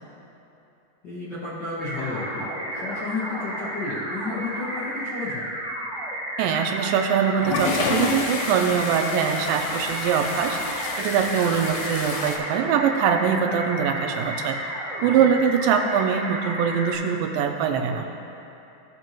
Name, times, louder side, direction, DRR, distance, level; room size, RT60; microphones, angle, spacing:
voice 1, 1.0-2.5 2.7-5.5 15.0-15.3, left 3 dB, 55° left, -10 dB, 1.2 m, -32 dB
sound 1, 1.8-16.9, right 1 dB, 50° right, 1.5 m, -32 dB
voice 2, 6.4-14.6 15.0-18.1, right 7 dB, 85° right, 5 dB, 2.4 m, -23 dB
sound 2, 7.4-12.4, left 4 dB, 85° left, 2.6 m, -29 dB
15.5 x 5.5 x 3.0 m, 2.9 s
omnidirectional pair, 3.9 m